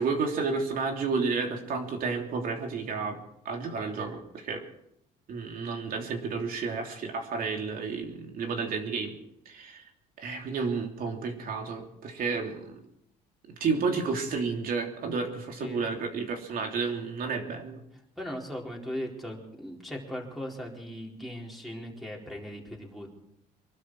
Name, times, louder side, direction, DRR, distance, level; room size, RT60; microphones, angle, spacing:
voice 1, 0.0-3.2 3.4-4.6 5.3-9.2 9.4-9.8 10.2-12.8 13.5-17.8, right 4 dB, 60° right, 3 dB, 3.3 m, -31 dB
voice 2, 15.6-15.9 18.2-23.1, equal, ahead, -3 dB, 4.2 m, -38 dB
24.0 x 12.5 x 4.8 m, 0.78 s
cardioid pair, 110°, 17 cm